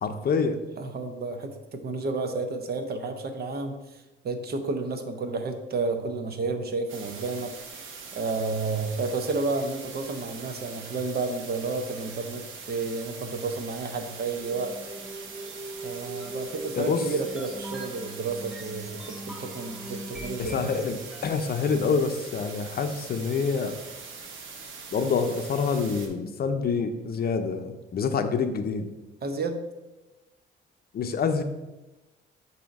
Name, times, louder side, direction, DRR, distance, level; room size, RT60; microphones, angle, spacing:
voice 1, 0.0-0.6 16.7-17.1 20.4-21.0 21.2-23.8 24.9-28.9 30.9-31.4, left 5 dB, 50° left, 7 dB, 0.6 m, -26 dB
voice 2, 0.8-7.5 8.1-14.7 15.8-20.7 29.2-29.6, right 3 dB, 50° right, 7 dB, 0.8 m, -31 dB
sound 1, 6.9-26.1, right 5 dB, 80° right, 0.9 m, -42 dB
sound 2, 14.4-21.5, right 1 dB, ahead, 0.8 m, -41 dB
6.9 x 2.8 x 5.2 m, 1.1 s
cardioid pair, 90°, 20 cm